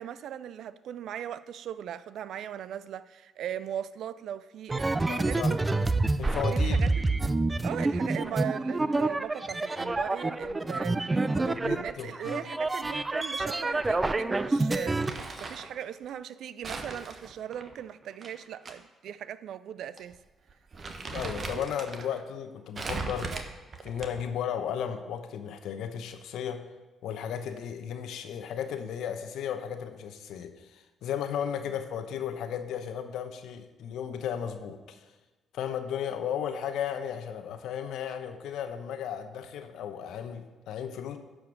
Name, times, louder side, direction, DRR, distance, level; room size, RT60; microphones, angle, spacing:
voice 1, 0.0-5.6 6.5-7.3 7.6-20.2 21.5-21.7 23.3-23.4 31.6-31.8, right 10 dB, 70° right, 0.4 m, -39 dB
sound 1, 4.7-15.1, right 2 dB, 25° right, 0.6 m, -28 dB
voice 2, 5.1-5.5 6.2-6.8 11.6-12.4 21.1-23.4 23.8-26.6 27.0-35.1 35.5-41.2, left 8 dB, 75° left, 0.9 m, -35 dB
Crumpling crinkling, 14.7-15.7 16.6-18.7 19.1-19.2 20.0-20.1 20.5-22.1 22.7-24.4, right 3 dB, 45° right, 1.2 m, -38 dB
11.0 x 5.1 x 6.1 m
hypercardioid pair, 50°, 0 cm